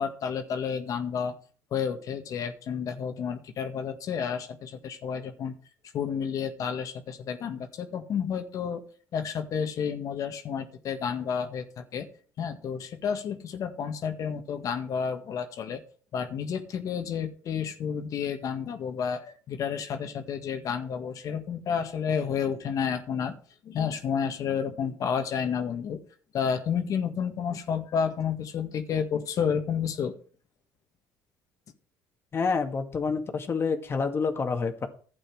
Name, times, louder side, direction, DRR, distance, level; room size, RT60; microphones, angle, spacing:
voice 1, 0.0-1.3 1.7-5.5 5.9-8.8 9.1-12.1 12.4-15.8 16.1-23.4 23.6-26.0 26.3-30.1, left 7 dB, 55° left, 6 dB, 1.8 m, -30 dB
voice 2, 32.3-34.9, left 5 dB, 35° left, 5 dB, 2.0 m, -28 dB
12.0 x 8.6 x 4.8 m, 0.43 s
supercardioid pair, 90°, 7 cm